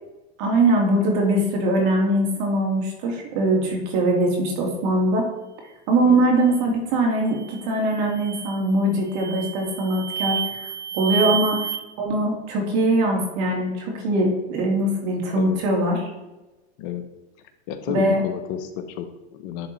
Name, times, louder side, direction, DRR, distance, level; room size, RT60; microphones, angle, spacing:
voice 1, 0.4-5.3 5.9-10.7 10.9-11.6 12.0-16.0 17.9-18.2, right 1 dB, 55° right, 0 dB, 2.7 m, -22 dB
sound 1, 7.3-7.6 8.1-8.6 9.1-11.8, right 8 dB, 85° right, 1.2 m, -29 dB
voice 2, 15.3-15.6 16.8-17.0 17.7-19.7, left 9 dB, 60° left, 9 dB, 0.9 m, -31 dB
10.5 x 3.7 x 4.3 m, 1.0 s
hypercardioid pair, 105°, 32 cm